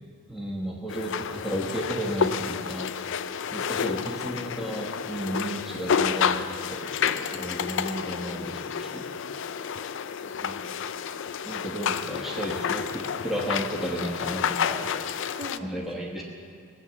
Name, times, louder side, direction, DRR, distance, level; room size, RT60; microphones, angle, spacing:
voice 1, 0.3-2.9 3.5-9.1 10.4-10.6 11.4-14.8 15.6-16.2, right 1 dB, ahead, -4 dB, 1.2 m, -33 dB
sound 1, 0.9-15.6, left 7 dB, 55° left, 0.4 m, -30 dB
voice 2, 10.1-12.0 15.3-16.2, equal, 40° right, 0 dB, 1.8 m, -46 dB
20.0 x 8.4 x 6.9 m, 2.4 s
head